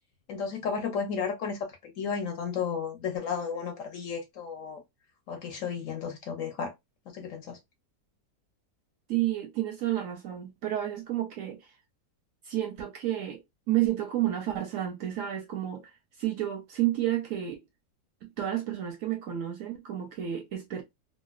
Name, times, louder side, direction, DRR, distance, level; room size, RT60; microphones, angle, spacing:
voice 1, 0.3-4.8 5.3-6.7 7.1-7.6, left 6 dB, 65° left, 0.9 m, -33 dB
voice 2, 9.1-11.8 12.4-13.4 13.7-17.6 18.2-20.8, right 13 dB, 70° right, 0.8 m, -31 dB
2.8 x 2.2 x 2.3 m
omnidirectional pair, 1.7 m